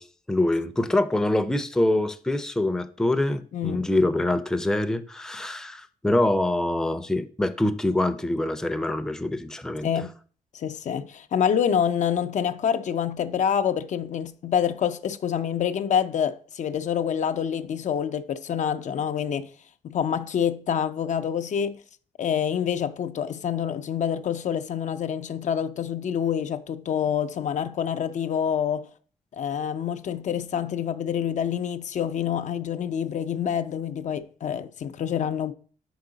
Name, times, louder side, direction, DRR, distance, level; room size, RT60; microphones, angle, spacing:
voice 1, 0.0-9.9, left 1 dB, 5° left, 0.5 m, -25 dB
voice 2, 3.5-3.9 9.8-10.1 10.5-19.5 19.8-21.8 22.2-28.9 29.3-35.5, left 8 dB, 60° left, 0.4 m, -27 dB
5.4 x 4.7 x 3.8 m
cardioid pair, 90°, 14 cm